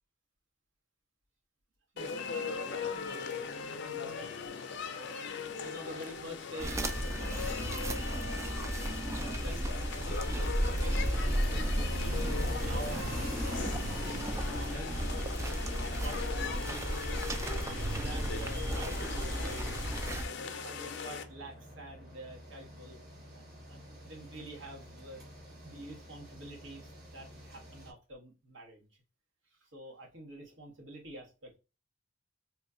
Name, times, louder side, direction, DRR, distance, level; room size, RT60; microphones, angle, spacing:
voice 1, 1.9-4.3 4.6-7.5 8.0-8.5 9.2-15.1 15.7-17.2 17.5-19.8 20.1-23.0 23.3-25.2 25.6-28.9 29.5-31.6, right 1 dB, 75° right, -2 dB, 1.3 m, -48 dB
sound 1, 2.0-21.2, left 5 dB, 60° left, 0.5 m, -40 dB
sound 2, 6.6-20.3, right 1 dB, 15° right, 0.3 m, -34 dB
sound 3, 10.6-27.9, equal, 55° right, 1.3 m, -46 dB
3.0 x 2.2 x 3.7 m, 0.30 s
head